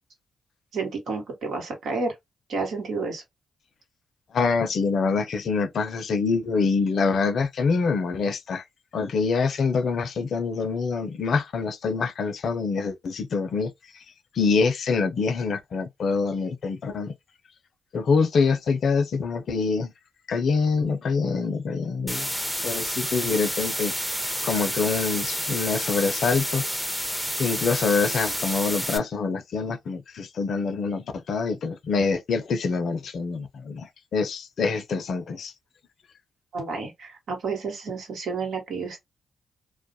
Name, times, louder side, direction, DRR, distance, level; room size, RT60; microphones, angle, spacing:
voice 1, 0.7-2.1 2.5-3.2 36.5-39.0, right 4 dB, 75° right, 1.1 m, -30 dB
voice 2, 4.3-8.6 8.9-13.7 14.3-17.1 17.9-19.9 20.3-22.4 22.6-23.9 24.4-26.7 27.0-35.5, left 4 dB, 70° left, 0.5 m, -25 dB
sound 1, 22.1-29.0, equal, 5° right, 0.6 m, -29 dB
2.3 x 2.0 x 2.6 m
supercardioid pair, 55°, 0 cm